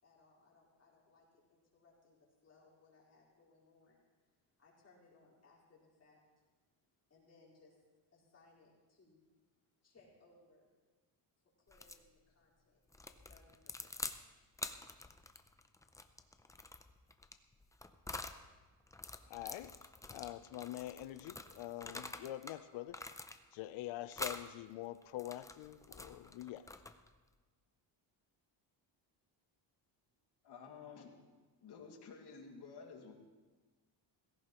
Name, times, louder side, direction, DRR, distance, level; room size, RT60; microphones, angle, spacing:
voice 1, 0.0-4.0 4.6-6.2 7.1-7.8 8.1-9.2 9.8-10.7 11.6-12.8 13.0-14.2, left 3 dB, 35° left, 4.5 m, -67 dB
sound 1, 11.7-12.0 12.9-14.2 14.5-18.4 18.9-22.6 22.9-23.6 24.1-24.5 25.0-27.1, left 2 dB, 10° left, 0.4 m, -47 dB
voice 2, 19.3-19.8 20.1-23.0 23.5-26.7, left 14 dB, 85° left, 0.7 m, -45 dB
voice 3, 30.4-31.1 31.6-33.1, left 5 dB, 60° left, 2.3 m, -52 dB
18.0 x 16.0 x 3.0 m
cardioid pair, 140°, 45 cm